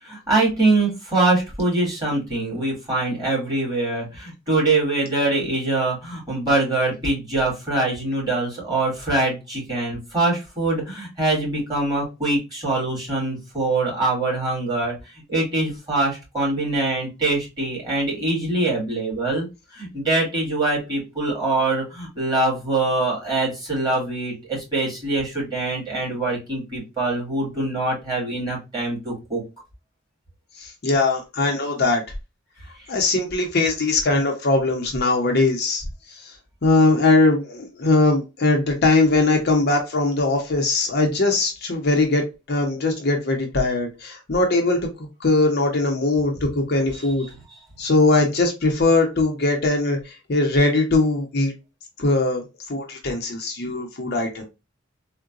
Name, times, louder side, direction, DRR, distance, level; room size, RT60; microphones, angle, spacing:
voice 1, 0.0-19.5 19.7-29.4 32.7-32.9 46.9-47.6, right 2 dB, 20° right, -5 dB, 1.9 m, -24 dB
voice 2, 30.6-32.0 32.9-35.8 36.6-44.8 45.2-47.3 47.8-51.5 52.0-52.4 52.7-54.4, left 2 dB, 50° left, 2 dB, 0.7 m, -20 dB
3.8 x 2.1 x 2.4 m, 0.26 s
head